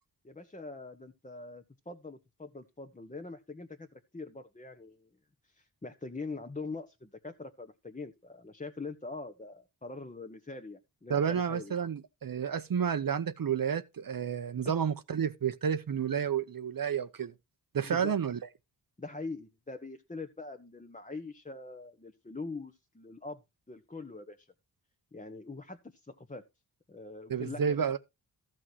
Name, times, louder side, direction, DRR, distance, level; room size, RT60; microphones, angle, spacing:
voice 1, 0.2-5.1 5.4-11.7 17.8-18.1 19.0-23.4 23.7-24.5 25.1-26.4 26.9-27.9, left 3 dB, 20° left, 1.3 m, -43 dB
voice 2, 11.1-17.3 17.7-18.4 27.3-28.0, right 7 dB, 60° right, 0.9 m, -30 dB
14.0 x 6.2 x 4.6 m
wide cardioid pair, 80°, 40 cm